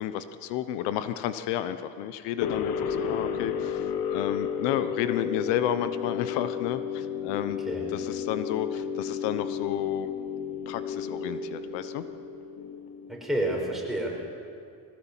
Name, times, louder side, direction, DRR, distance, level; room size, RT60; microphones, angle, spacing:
voice 1, 0.0-7.6 7.9-10.1 10.7-12.0, left 11 dB, 85° left, 11 dB, 1.0 m, -31 dB
sound 1, 2.4-13.3, left 7 dB, 60° left, 1.7 m, -32 dB
voice 2, 13.1-14.1, right 1 dB, ahead, -2 dB, 5.8 m, -29 dB
21.0 x 17.5 x 7.4 m, 2.3 s
cardioid pair, 115°, 41 cm